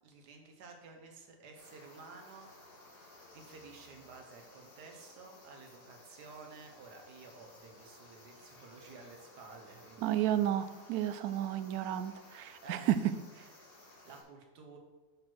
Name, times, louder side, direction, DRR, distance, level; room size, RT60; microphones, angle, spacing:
voice 1, 0.0-2.5 3.3-10.4 12.6-12.9 13.8-14.8, right 4 dB, 90° right, 3 dB, 1.7 m, -53 dB
sound 1, 1.6-14.2, left 2 dB, 90° left, 2.3 m, -57 dB
voice 2, 10.0-13.0 13.3-13.5, right 12 dB, 75° right, 12 dB, 1.0 m, -32 dB
7.3 x 4.5 x 6.1 m, 1.2 s
omnidirectional pair, 1.7 m